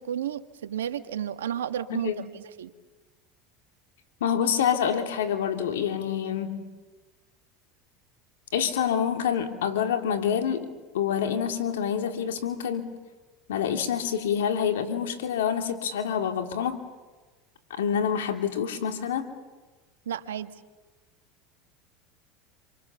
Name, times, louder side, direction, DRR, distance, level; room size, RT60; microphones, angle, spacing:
voice 1, 0.0-2.7 20.0-20.5, right 10 dB, 90° right, 10 dB, 1.4 m, -32 dB
voice 2, 1.9-2.3 4.2-6.7 8.5-12.9 13.5-16.8 17.7-19.3, left 8 dB, 85° left, 6 dB, 2.8 m, -27 dB
27.5 x 26.5 x 7.1 m, 1.3 s
hypercardioid pair, 95°, 0 cm